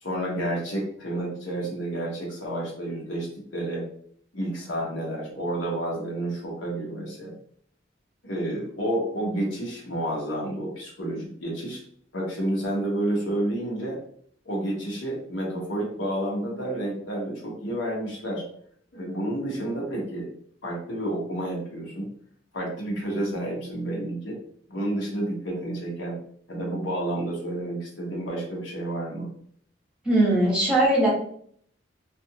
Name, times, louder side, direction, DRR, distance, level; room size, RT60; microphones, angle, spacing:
voice 1, 0.0-3.9 4.3-7.4 8.2-11.8 12.1-14.0 14.4-18.4 18.9-20.3 20.6-22.1 22.5-24.4 24.7-26.2 26.5-29.3, right 1 dB, 70° left, -2 dB, 0.9 m, -30 dB
voice 2, 30.0-31.1, right 1 dB, 5° right, -7 dB, 1.0 m, -20 dB
2.5 x 2.4 x 2.7 m, 0.62 s
head